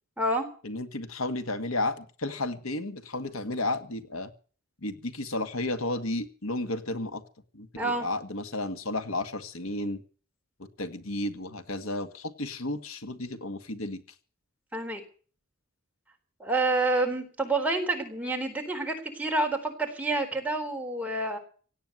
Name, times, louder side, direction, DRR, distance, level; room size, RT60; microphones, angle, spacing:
voice 1, 0.6-4.3 4.8-7.2 7.5-10.0 10.8-14.0, left 2 dB, 90° left, 9 dB, 1.8 m, -32 dB
voice 2, 7.7-8.1 14.7-15.0 16.4-21.4, right 2 dB, 5° right, 2 dB, 3.9 m, -28 dB
17.5 x 9.1 x 7.9 m, 0.41 s
head